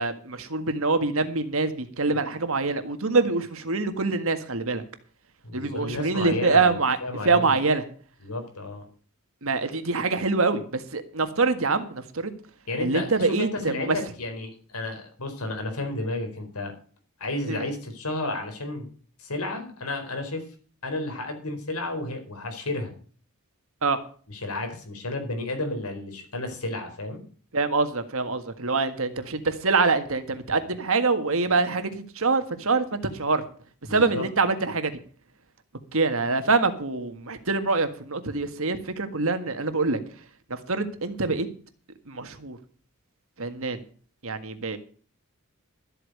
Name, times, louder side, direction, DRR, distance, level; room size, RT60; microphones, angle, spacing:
voice 1, 0.0-4.8 5.5-7.0 7.2-7.8 9.4-12.3 12.8-14.0 17.5-17.7 23.8-24.0 27.5-33.4 33.9-35.0 35.9-40.0 40.5-41.5 42.1-42.6 43.4-43.8 44.2-44.8, right 3 dB, 65° right, 9 dB, 1.7 m, -25 dB
voice 2, 5.4-7.6 8.2-8.8 12.7-16.7 17.2-18.9 19.2-20.4 20.8-22.9 24.3-27.2 33.9-34.2, left 2 dB, 90° left, 5 dB, 4.6 m, -32 dB
13.5 x 8.3 x 6.7 m, 0.42 s
head